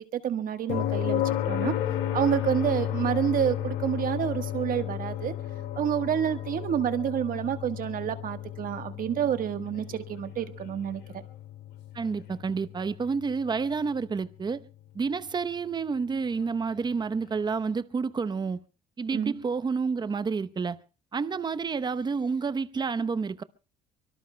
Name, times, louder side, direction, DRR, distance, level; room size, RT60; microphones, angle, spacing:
voice 1, 0.0-1.7 2.1-5.3 5.8-11.0 19.1-19.3, right 9 dB, 55° right, 1.4 m, -28 dB
sound 1, 0.7-14.5 16.8-16.9, left 11 dB, 90° left, 2.0 m, -33 dB
voice 2, 11.9-14.6 14.9-18.6 19.0-20.8 21.1-23.4, right 5 dB, 25° right, 0.8 m, -29 dB
24.5 x 23.5 x 2.2 m
cardioid pair, 110°, 17 cm